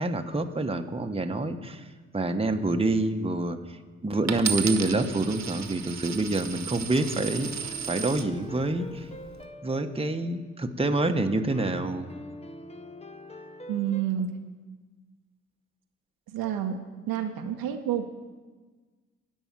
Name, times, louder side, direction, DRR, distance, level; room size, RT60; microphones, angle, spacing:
voice 1, 0.0-1.9 2.1-3.8 4.0-9.1 9.6-12.1, right 2 dB, 15° right, 5 dB, 1.2 m, -27 dB
Coin (dropping), 4.3-8.3 9.0-9.4, right 7 dB, 45° right, 1.4 m, -34 dB
sound 1, 6.9-10.6 11.5-14.0, left 1 dB, 15° left, 0.9 m, -44 dB
voice 2, 13.7-14.4 16.3-18.1, right 9 dB, 65° right, 5 dB, 1.1 m, -29 dB
16.0 x 5.5 x 9.0 m, 1.4 s
hypercardioid pair, 45°, 38 cm